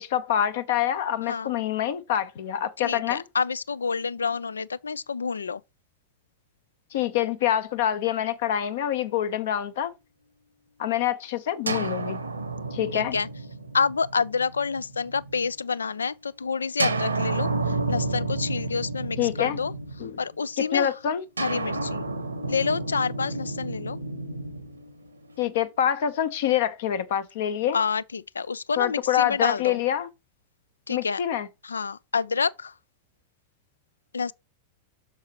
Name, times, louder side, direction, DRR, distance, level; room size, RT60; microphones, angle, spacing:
voice 1, 0.0-3.2 6.9-9.9 10.8-12.2 12.7-13.2 19.2-19.6 20.0-20.2 20.6-21.2 25.4-27.8 28.8-30.1 30.9-31.5, left 10 dB, 55° left, 0.7 m, -26 dB
voice 2, 2.8-5.6 12.9-13.3 13.7-19.7 20.2-20.9 21.4-22.0 22.5-24.0 27.7-29.8 30.9-31.2 31.6-32.7 34.1-34.3, left 5 dB, 75° left, 0.3 m, -28 dB
sound 1, 11.7-15.5 16.8-20.4 21.4-25.5, right 3 dB, 80° right, 1.2 m, -31 dB
7.0 x 6.5 x 2.9 m
figure-of-eight pair, 90°, 0 cm